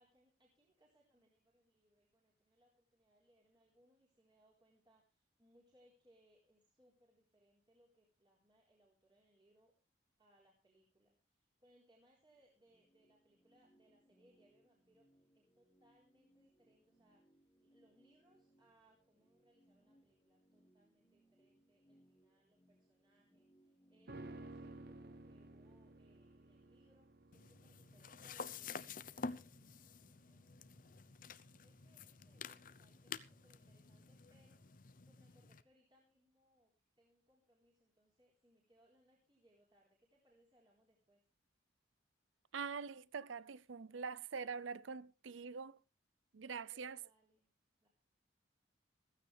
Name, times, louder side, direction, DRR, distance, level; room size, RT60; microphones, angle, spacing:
voice 1, 0.0-9.7 10.2-27.1 27.3-29.7 30.1-31.2 31.6-34.6 35.1-36.7 37.0-41.2 46.7-47.5 47.8-47.9, right 1 dB, 25° right, 4.0 m, -73 dB
sound 1, 12.3-24.8, right 1 dB, 15° left, 1.7 m, -73 dB
sound 2, 24.1-33.5 33.8-33.9, right 2 dB, 55° right, 1.1 m, -56 dB
sound 3, 27.3-35.6, left 5 dB, 45° left, 0.7 m, -50 dB
voice 2, 42.5-45.8 46.3-47.0, right 5 dB, 80° right, 0.6 m, -44 dB
15.5 x 15.0 x 3.4 m
head